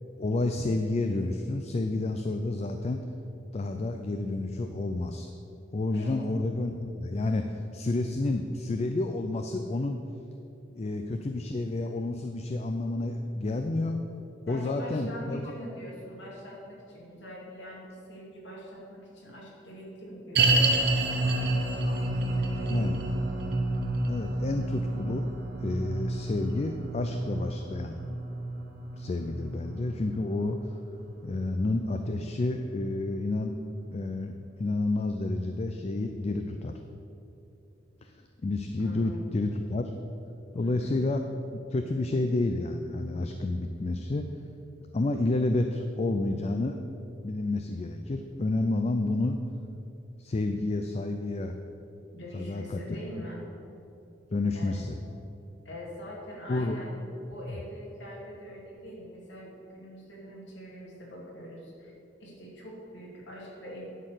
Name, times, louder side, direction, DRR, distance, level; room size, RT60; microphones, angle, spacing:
voice 1, 0.2-3.0 3.5-5.3 5.7-10.0 10.8-14.0 14.5-15.5 22.7-23.0 24.1-25.3 25.6-28.0 28.9-30.6 31.2-33.6 33.9-36.8 38.0-38.1 38.4-39.9 40.5-41.2 41.5-44.3 44.9-46.8 47.2-49.4 50.2-51.6 52.3-53.0 54.3-55.0 56.5-56.8, left 2 dB, 35° left, 6 dB, 0.4 m, -30 dB
voice 2, 14.5-23.1 38.8-39.3 40.5-40.9 52.1-53.5 54.5-55.0 55.6-61.9 62.2-63.9, equal, 75° left, -4 dB, 2.4 m, -43 dB
sound 1, 20.3-31.6 31.9-32.0 32.6-32.7, right 2 dB, 60° right, 0.8 m, -29 dB
11.0 x 4.5 x 6.5 m, 2.7 s
head